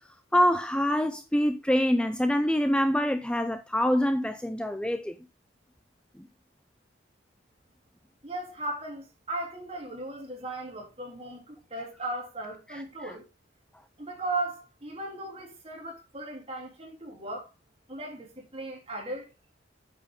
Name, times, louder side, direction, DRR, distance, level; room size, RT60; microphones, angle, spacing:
voice 1, 0.3-5.1 12.7-13.1, equal, 5° left, 0.4 m, -25 dB
voice 2, 8.2-13.2 14.0-17.5 17.9-19.3, right 2 dB, 30° right, 3.2 m, -37 dB
8.7 x 7.5 x 3.6 m
head